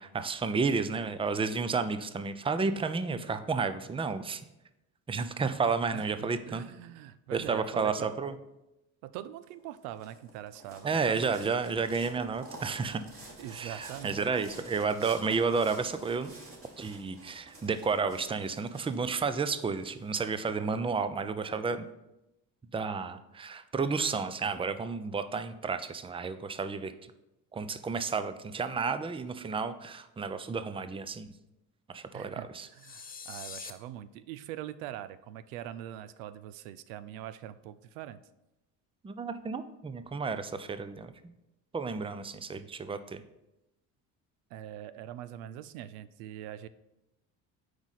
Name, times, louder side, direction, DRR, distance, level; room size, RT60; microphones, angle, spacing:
voice 1, 0.0-4.4 5.1-6.6 7.3-8.3 10.8-13.0 13.5-16.3 16.8-21.9 22.7-26.9 27.5-31.3 31.9-32.7 39.0-41.1 41.7-43.2, right 5 dB, 15° right, 11 dB, 0.5 m, -31 dB
voice 2, 5.9-8.1 9.0-11.4 13.4-14.2 32.1-38.2 44.5-46.7, right 12 dB, 85° right, 14 dB, 0.5 m, -43 dB
sound 1, 9.5-20.3, right 2 dB, 30° right, 2.2 m, -50 dB
sound 2, 32.8-33.7, left 5 dB, 20° left, 0.7 m, -43 dB
8.0 x 4.9 x 4.1 m, 0.92 s
supercardioid pair, 75°, 41 cm